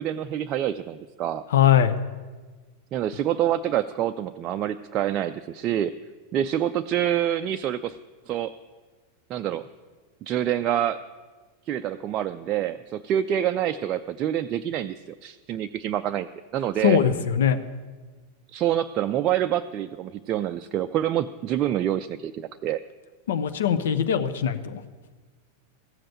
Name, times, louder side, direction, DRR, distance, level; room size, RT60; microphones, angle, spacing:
voice 1, 0.0-1.4 2.9-5.9 6.3-8.0 8.3-8.5 9.3-9.6 10.2-11.0 11.7-17.0 18.5-22.8, right 11 dB, 35° right, 7 dB, 0.4 m, -26 dB
voice 2, 1.5-1.9 16.8-17.6 23.3-24.8, left 9 dB, 60° left, 10 dB, 0.9 m, -21 dB
15.0 x 7.7 x 9.1 m, 1.4 s
figure-of-eight pair, 90°, 0 cm